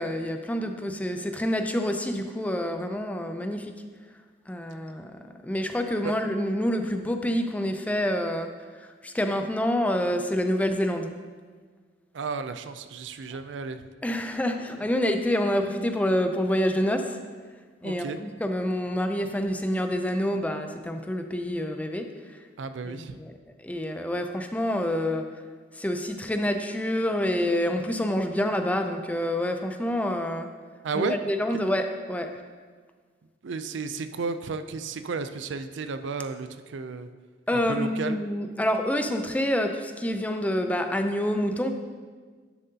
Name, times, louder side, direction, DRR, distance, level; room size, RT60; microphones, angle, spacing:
voice 1, 0.0-3.7 4.5-5.1 5.4-8.5 9.0-11.1 14.0-17.2 17.8-22.1 22.9-23.3 23.6-25.3 25.8-30.5 30.9-32.3 37.5-41.7, left 1 dB, 10° left, 6 dB, 0.4 m, -27 dB
voice 2, 12.1-13.8 17.8-18.2 22.6-23.1 30.8-31.2 33.4-37.1 37.5-38.2, right 4 dB, 70° right, 10 dB, 0.4 m, -33 dB
10.0 x 7.4 x 2.8 m, 1.5 s
head